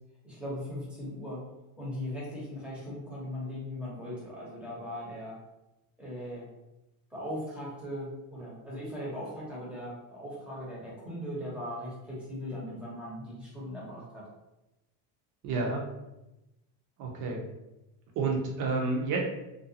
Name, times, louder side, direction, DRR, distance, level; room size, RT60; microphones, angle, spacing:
voice 1, 0.2-1.4 1.8-5.4 6.0-6.5 7.1-14.3, left 1 dB, ahead, -7 dB, 0.7 m, -39 dB
voice 2, 15.4-15.8 17.0-17.4 18.2-19.2, right 3 dB, 40° right, 1 dB, 0.6 m, -30 dB
2.5 x 2.2 x 2.7 m, 0.95 s
cardioid pair, 150°, 48 cm